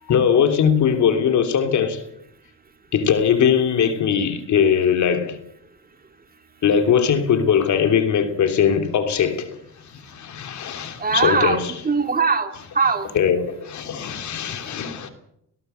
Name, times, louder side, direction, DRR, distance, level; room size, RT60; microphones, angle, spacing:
voice 1, 0.0-2.0 2.9-5.4 6.6-9.6 9.8-11.7 13.1-15.1, left 7 dB, 70° left, 3.2 m, -20 dB
voice 2, 11.0-13.1, right 4 dB, 30° right, 2.7 m, -21 dB
19.5 x 17.5 x 8.1 m
cardioid pair, 90°, 30 cm